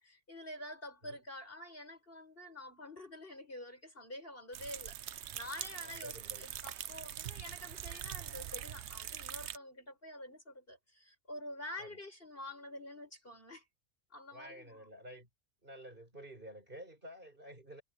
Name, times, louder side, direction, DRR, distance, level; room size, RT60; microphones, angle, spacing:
voice 1, 0.0-13.6 14.1-14.9, left 1 dB, 45° left, 7.7 m, -48 dB
sound 1, 4.5-9.6, right 10 dB, 65° right, 1.0 m, -43 dB
voice 2, 5.8-6.5 11.8-12.0 14.3-15.3 15.6-17.8, equal, 40° right, 5.6 m, -51 dB
omnidirectional pair, 1.3 m